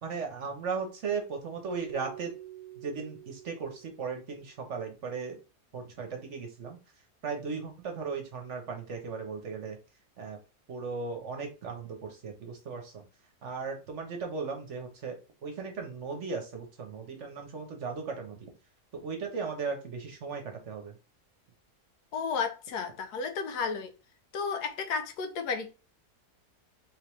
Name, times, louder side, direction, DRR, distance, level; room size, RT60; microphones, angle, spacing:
voice 1, 0.0-2.3 2.8-5.4 5.7-6.8 7.2-9.8 10.2-10.4 10.7-13.0 13.4-15.2 15.4-18.4 19.0-20.9, right 5 dB, 55° right, 1.1 m, -37 dB
Keyboard (musical), 1.7-4.5, right 12 dB, 80° right, 1.1 m, -47 dB
voice 2, 22.1-23.9 24.3-25.7, left 5 dB, 85° left, 1.3 m, -32 dB
3.6 x 3.4 x 3.0 m
omnidirectional pair, 1.7 m